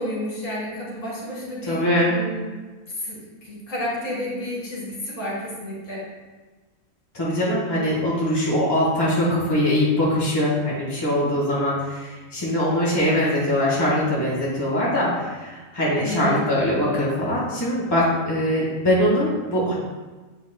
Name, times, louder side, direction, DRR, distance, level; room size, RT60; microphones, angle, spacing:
voice 1, 0.0-2.5 3.0-3.2 3.4-6.0 16.0-16.4, equal, 65° left, -6 dB, 2.5 m, -31 dB
voice 2, 1.7-2.2 7.1-19.7, left 1 dB, 20° left, -6 dB, 1.3 m, -22 dB
7.7 x 5.5 x 2.2 m, 1.3 s
omnidirectional pair, 1.5 m